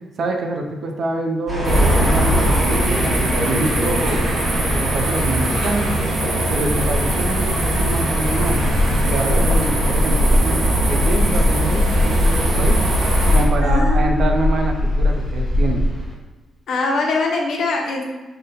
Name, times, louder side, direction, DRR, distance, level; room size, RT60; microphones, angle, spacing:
voice 1, 0.2-4.3 4.7-5.9 6.5-8.6 9.0-12.8 13.3-15.8, right 2 dB, 55° right, 3 dB, 0.5 m, -25 dB
sound 1, 1.5-16.1, left 1 dB, 5° left, 1.2 m, -21 dB
sound 2, 1.6-13.4, right 1 dB, 75° right, 1.0 m, -21 dB
voice 2, 13.6-14.4 16.7-18.0, left 3 dB, 65° left, 1 dB, 0.6 m, -22 dB
3.8 x 2.1 x 4.0 m, 1.2 s
cardioid pair, 120°, 0 cm